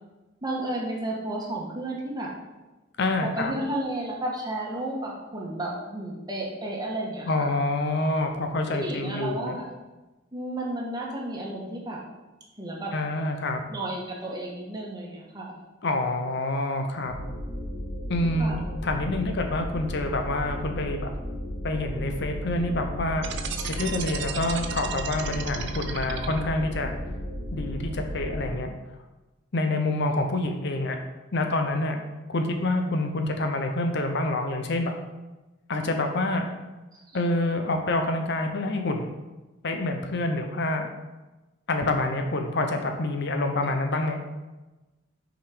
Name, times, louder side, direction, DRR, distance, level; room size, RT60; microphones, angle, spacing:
voice 1, 0.4-2.3 3.2-7.5 8.7-9.7 10.3-12.0 12.6-12.9 13.7-15.6 18.4-18.6 36.9-37.2, right 1 dB, 20° right, -3 dB, 1.3 m, -32 dB
voice 2, 3.0-3.5 7.2-9.6 12.9-13.6 15.8-17.1 18.1-18.5 18.8-21.1 21.6-23.3 23.7-26.9 27.5-28.7 29.5-31.0 31.3-32.0 32.3-34.9 35.7-36.5 37.1-39.1 39.6-40.9 41.7-44.2, left 2 dB, 55° left, 5 dB, 0.7 m, -27 dB
sound 1, 17.0-28.5, equal, 85° left, 1.6 m, -34 dB
sound 2, 23.2-26.7, right 7 dB, 60° right, 0.6 m, -35 dB
6.3 x 5.0 x 4.9 m, 1.1 s
head